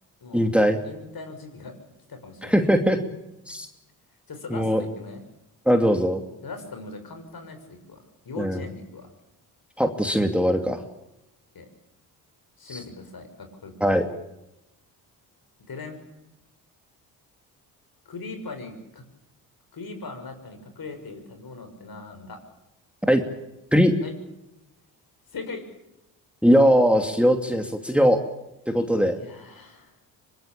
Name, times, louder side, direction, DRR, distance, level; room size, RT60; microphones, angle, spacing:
voice 1, 0.3-0.8 2.4-3.0 3.5-3.7 4.5-4.8 5.7-6.2 8.4-8.6 9.8-10.8 12.7-12.8 13.8-14.0 23.0-23.2 23.7-23.9 26.4-28.2 28.7-29.2, equal, ahead, 5 dB, 2.7 m, -20 dB
voice 2, 0.8-1.7 2.1-2.7 4.3-5.2 6.4-9.1 11.5-11.7 12.6-13.7 15.7-16.0 18.0-19.0 19.7-22.4 24.0-24.1 25.3-25.6 29.1-29.9, left 3 dB, 50° left, 6 dB, 6.5 m, -39 dB
24.0 x 21.5 x 8.8 m, 0.90 s
hypercardioid pair, 50°, 46 cm